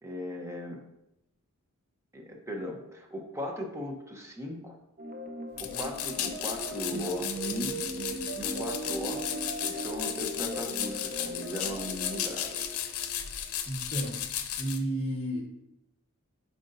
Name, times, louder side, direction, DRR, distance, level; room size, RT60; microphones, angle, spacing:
voice 1, 0.0-0.8 2.1-4.8 5.6-9.2 9.6-12.8, left 1 dB, 15° right, 2 dB, 0.9 m, -38 dB
sound 1, 5.0-13.6, right 1 dB, 40° right, 0.7 m, -38 dB
sound 2, 5.6-14.8, left 10 dB, 85° left, 0.6 m, -35 dB
voice 2, 13.6-14.2 14.6-15.4, right 1 dB, 25° left, -1 dB, 1.3 m, -32 dB
8.1 x 5.0 x 2.6 m, 0.85 s
head